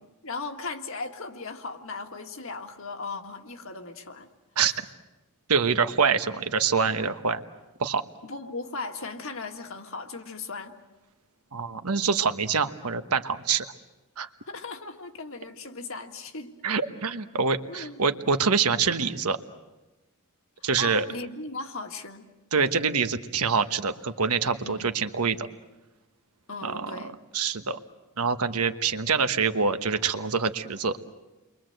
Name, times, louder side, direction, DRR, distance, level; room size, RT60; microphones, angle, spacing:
voice 1, 0.2-4.3 4.7-4.8 8.2-10.7 14.5-16.5 17.7-18.0 20.6-22.3 22.6-22.8 24.6-24.9 26.5-27.1, left 3 dB, 60° left, 5 dB, 1.9 m, -37 dB
voice 2, 5.5-7.4 7.8-8.0 11.5-13.7 14.2-14.3 16.6-19.4 20.6-21.1 22.5-25.5 26.6-27.0 27.3-27.8 28.2-31.0, right 5 dB, 85° right, 9 dB, 1.3 m, -25 dB
29.5 x 23.5 x 7.9 m, 1.0 s
head